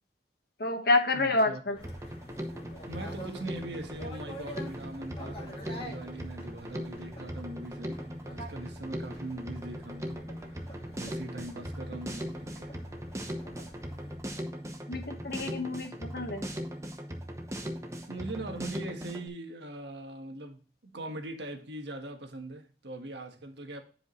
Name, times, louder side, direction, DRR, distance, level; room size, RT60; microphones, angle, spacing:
voice 1, 0.6-1.8 14.9-16.5, left 2 dB, 60° left, 1.3 m, -28 dB
voice 2, 1.1-1.6 2.9-12.7 18.1-23.8, right 2 dB, 75° right, 1.5 m, -41 dB
sound 1, 1.7-14.2, equal, 30° left, 1.7 m, -47 dB
Drum kit, 1.8-19.3, equal, 15° right, 0.9 m, -39 dB
10.5 x 5.0 x 3.1 m
head